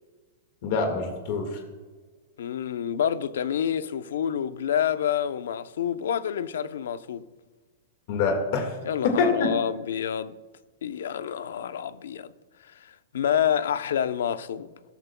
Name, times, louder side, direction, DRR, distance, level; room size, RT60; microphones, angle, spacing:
voice 1, 0.6-1.6 8.1-8.7 9.0-9.5, left 4 dB, 40° left, 1.7 m, -25 dB
voice 2, 2.4-7.3 8.8-10.3 10.8-12.3 12.8-14.7, left 9 dB, 80° left, 0.7 m, -28 dB
17.5 x 13.5 x 2.3 m
supercardioid pair, 180°, 0 cm